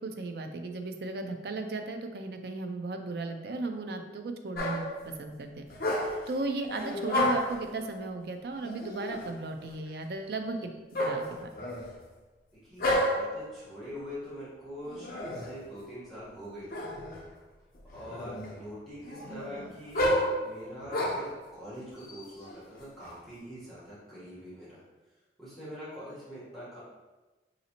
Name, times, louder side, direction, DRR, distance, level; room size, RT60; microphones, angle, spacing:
voice 1, 0.0-4.8 5.2-5.7 6.3-10.7 11.0-11.5, right 3 dB, 60° right, 6 dB, 0.4 m, -35 dB
sound 1, 4.6-5.0 5.7-6.3 6.7-7.6 8.6-9.4 10.9-12.0 12.8-13.4 14.8-15.6 16.7-17.2 17.7-18.6 19.0-21.4 22.0-23.1, left 1 dB, 55° left, 0.7 m, -31 dB
voice 2, 12.6-16.8 17.9-21.2 21.5-24.8 25.4-26.8, equal, ahead, -11 dB, 1.2 m, -44 dB
4.9 x 2.7 x 2.9 m, 1.2 s
head